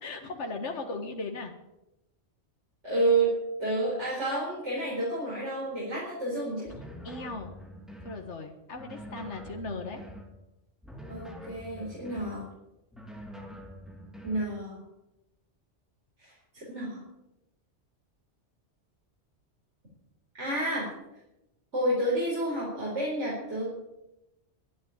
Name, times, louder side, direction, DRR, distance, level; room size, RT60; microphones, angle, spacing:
voice 1, 0.0-1.5 7.0-7.5 8.0-10.0, left 3 dB, 75° left, 3 dB, 1.9 m, -37 dB
voice 2, 2.8-3.3 3.6-6.7 11.1-12.5 14.2-14.8 16.2-17.0 20.4-20.9 21.7-23.7, right 2 dB, 75° right, -6 dB, 5.0 m, -30 dB
sound 1, 6.7-8.2 8.7-10.3 10.8-12.4 12.9-14.5, equal, ahead, 3.0 m, -45 dB
12.0 x 11.0 x 8.8 m, 0.92 s
omnidirectional pair, 1.2 m